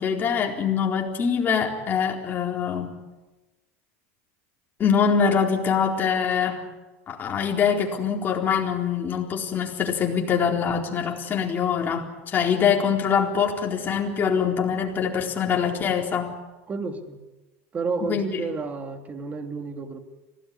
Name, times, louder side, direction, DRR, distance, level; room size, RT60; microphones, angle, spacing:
voice 1, 0.0-3.0 4.8-6.6 7.1-16.4 18.0-18.4, left 7 dB, 25° left, 0 dB, 4.2 m, -24 dB
voice 2, 16.7-17.2 17.7-20.0, right 4 dB, 20° right, 6 dB, 2.5 m, -31 dB
26.0 x 17.5 x 9.8 m, 1.2 s
supercardioid pair, 145°, 8 cm